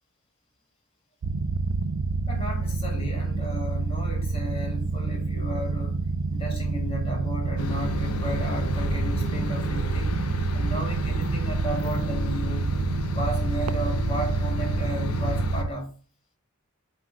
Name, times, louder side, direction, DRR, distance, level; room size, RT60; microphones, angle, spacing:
sound 1, 1.2-15.7, right 4 dB, 80° right, 0.4 m, -28 dB
voice 1, 2.3-6.0 6.3-10.2 10.5-12.7 13.1-16.0, equal, 25° left, 1.9 m, -34 dB
sound 2, 7.6-15.6, left 2 dB, 90° left, 0.9 m, -33 dB
7.8 x 3.1 x 4.9 m
head